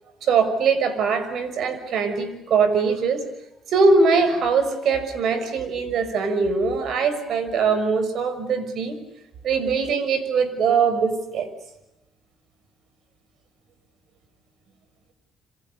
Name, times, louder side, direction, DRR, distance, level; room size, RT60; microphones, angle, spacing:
voice 1, 0.2-3.3 3.7-9.0 9.4-11.5, right 4 dB, 70° right, 11 dB, 6.1 m, -22 dB
28.5 x 26.5 x 7.0 m, 0.93 s
cardioid pair, 100°, 0 cm